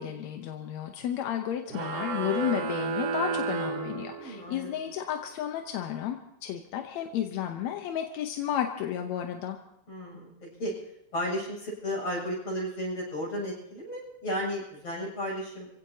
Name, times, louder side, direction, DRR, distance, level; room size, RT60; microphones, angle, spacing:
voice 1, 0.0-9.6, left 10 dB, 70° left, 5 dB, 1.9 m, -32 dB
sound 1, 1.7-4.6, right 5 dB, 55° right, 2.0 m, -32 dB
voice 2, 4.2-4.7 9.9-10.7 11.1-15.7, equal, 45° left, -4 dB, 8.4 m, -34 dB
27.0 x 16.5 x 2.8 m, 0.79 s
omnidirectional pair, 3.8 m